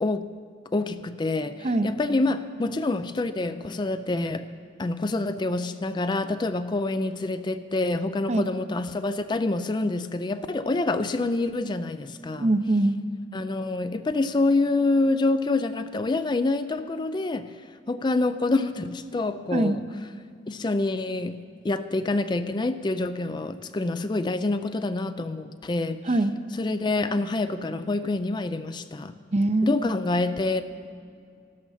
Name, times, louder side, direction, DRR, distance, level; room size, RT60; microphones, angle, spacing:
voice 1, 0.7-4.5 4.8-12.5 13.3-19.8 20.5-26.0 26.6-29.1 29.6-30.6, left 2 dB, 25° left, 11 dB, 0.4 m, -27 dB
voice 2, 12.4-13.0 19.5-19.8 26.0-26.3 29.3-29.8, right 2 dB, 35° right, 11 dB, 0.6 m, -23 dB
13.0 x 13.0 x 5.7 m, 2.3 s
head